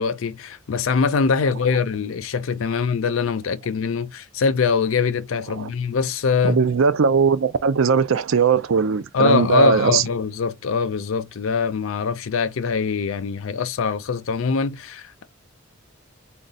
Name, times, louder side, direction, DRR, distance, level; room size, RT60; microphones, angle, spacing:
voice 1, 0.0-6.6 9.1-15.3, left 5 dB, 70° left, 0.4 m, -23 dB
voice 2, 6.4-10.0, right 5 dB, 70° right, 0.5 m, -19 dB
3.8 x 2.2 x 4.0 m
head